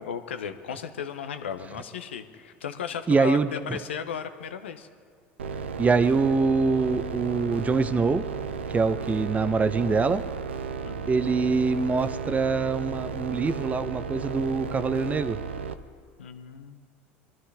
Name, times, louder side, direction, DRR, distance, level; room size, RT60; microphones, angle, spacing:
voice 1, 0.0-4.9 10.8-11.1 16.2-16.8, left 7 dB, 85° left, 9 dB, 0.8 m, -35 dB
voice 2, 3.1-3.5 5.8-8.2 8.7-10.2 11.1-15.4, right 4 dB, 25° right, 12 dB, 0.7 m, -24 dB
sound 1, 5.4-15.7, right 6 dB, 90° right, 0.6 m, -34 dB
22.0 x 13.0 x 3.4 m, 2.1 s
hypercardioid pair, 80°, 6 cm